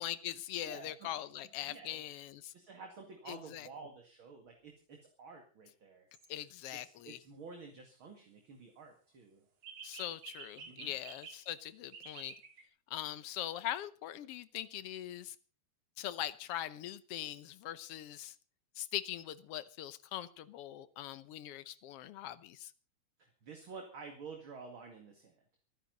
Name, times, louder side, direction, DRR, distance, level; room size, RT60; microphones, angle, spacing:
voice 1, 0.0-2.5 3.3-3.7 6.3-7.2 9.8-12.3 12.9-15.3 16.0-18.3 18.8-22.7, left 12 dB, 65° left, 15 dB, 1.5 m, -41 dB
voice 2, 0.6-1.1 1.6-2.0 2.5-6.1 6.8-9.4 10.7-10.9 23.2-25.4, right 5 dB, 45° right, 3 dB, 2.7 m, -51 dB
sound 1, 6.1-6.3 9.6-11.4 11.9-12.6, right 6 dB, 85° right, 4.1 m, -50 dB
26.0 x 10.0 x 4.0 m, 0.37 s
omnidirectional pair, 3.4 m